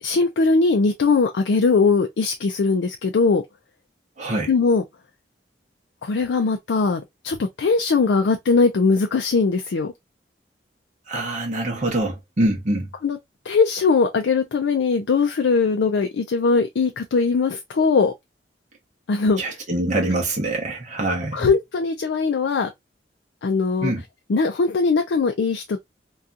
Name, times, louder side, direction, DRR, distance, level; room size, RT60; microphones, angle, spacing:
voice 1, 0.0-3.4 4.5-4.8 6.0-9.9 13.0-13.2 13.5-18.1 19.1-19.4 21.3-22.7 23.4-23.9 24.3-25.8, left 4 dB, 85° left, 0.4 m, -20 dB
voice 2, 4.2-4.5 11.1-12.9 19.4-21.5 23.8-24.0, right 1 dB, 45° right, 0.8 m, -24 dB
2.7 x 2.3 x 2.4 m
head